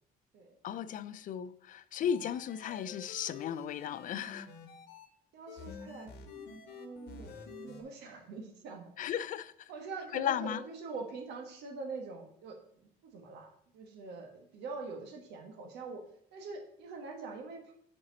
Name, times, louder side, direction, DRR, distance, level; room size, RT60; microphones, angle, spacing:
voice 1, 0.6-4.5 9.0-9.7 10.1-10.6, left 9 dB, 50° left, 0.4 m, -35 dB
sound 1, 2.1-5.1 5.5-7.8, left 4 dB, 75° left, 1.1 m, -49 dB
voice 2, 5.3-6.1 6.7-8.9 9.7-13.5 13.7-16.0 16.3-17.7, right 4 dB, 80° right, 1.4 m, -44 dB
7.8 x 4.4 x 4.0 m
cardioid pair, 110°, 17 cm